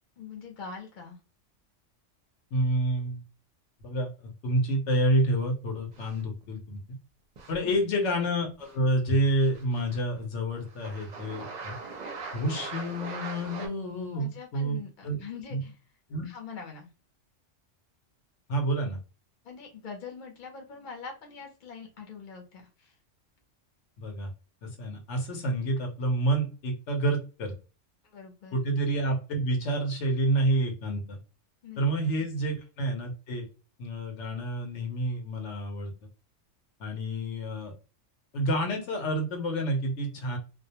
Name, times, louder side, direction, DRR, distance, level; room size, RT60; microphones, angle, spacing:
voice 1, 0.2-1.2 7.6-7.9 14.1-15.8 16.2-16.9 19.4-22.9 28.0-28.6 31.6-31.8 32.2-32.3, left 5 dB, 45° left, 2 dB, 0.8 m, -43 dB
voice 2, 2.5-3.2 3.8-6.8 7.5-11.7 12.3-14.8 15.0-15.2 15.5-15.6 16.1-16.3 18.5-19.0 24.0-24.3 24.6-27.5 28.5-31.2 31.8-33.5 33.8-35.9 36.8-37.7 38.3-40.4, right 1 dB, 75° left, 2 dB, 1.0 m, -28 dB
sound 1, 5.9-6.4 7.4-7.6 8.6-8.8 9.0-10.2 10.5-13.7, right 4 dB, 50° right, 0.5 m, -41 dB
2.3 x 2.2 x 2.7 m, 0.33 s
omnidirectional pair, 1.3 m